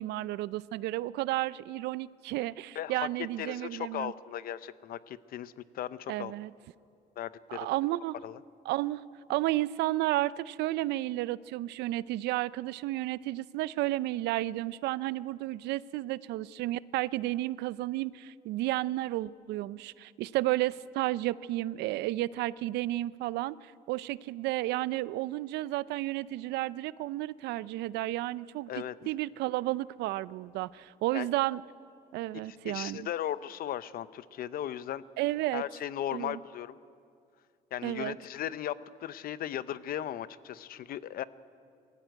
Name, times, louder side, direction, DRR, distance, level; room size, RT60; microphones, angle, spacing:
voice 1, 0.0-4.1 6.1-6.5 7.5-8.1 8.7-9.0 9.3-28.7 29.1-31.6 32.1-33.1 35.2-35.6 36.1-36.4 37.8-38.2, right 16 dB, 85° right, 19 dB, 0.5 m, -32 dB
voice 2, 2.7-3.1 3.4-6.3 7.2-7.7 8.2-8.4 28.7-28.9 31.1-31.3 32.3-35.0 35.5-36.7 37.7-41.2, left 11 dB, 60° left, 16 dB, 0.7 m, -37 dB
21.5 x 16.0 x 9.2 m, 2.4 s
cardioid pair, 110°, 17 cm